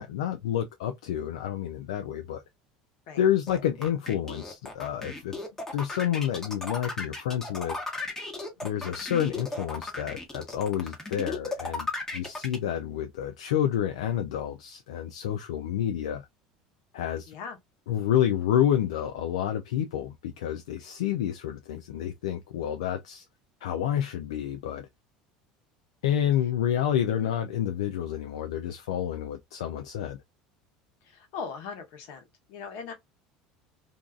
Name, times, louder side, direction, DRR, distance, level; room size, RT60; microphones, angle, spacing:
voice 1, 0.0-2.4 3.2-5.3 5.7-7.8 8.6-16.3 16.9-17.3 17.9-23.2 23.6-24.9 26.0-30.2, left 10 dB, 90° left, 0.3 m, -29 dB
sound 1, 3.5-12.6, left 3 dB, 15° left, 1.0 m, -35 dB
voice 2, 17.3-17.6 27.1-27.3 31.0-32.9, left 5 dB, 70° left, 1.1 m, -40 dB
2.6 x 2.3 x 2.3 m
supercardioid pair, 95°, 3 cm